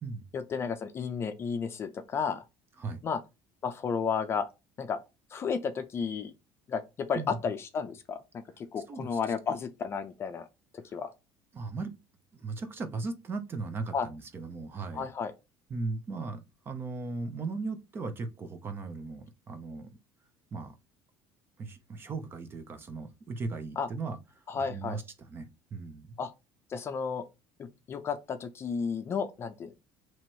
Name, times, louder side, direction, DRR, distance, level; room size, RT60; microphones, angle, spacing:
voice 1, 0.3-2.4 3.0-3.2 3.6-4.5 4.8-5.0 5.3-6.3 6.7-10.5 10.7-11.1 13.9-14.1 14.9-15.3 23.8-23.9 24.5-25.0 26.2-26.3 26.7-27.2 27.6-29.8, left 6 dB, 30° left, 0.5 m, -33 dB
voice 2, 8.9-9.2 10.9-11.0 11.5-11.9 12.3-15.1 15.7-19.9 20.5-20.7 21.6-24.2 24.6-26.2, right 3 dB, 25° right, 0.7 m, -37 dB
3.0 x 3.0 x 4.5 m
cardioid pair, 155°, 9 cm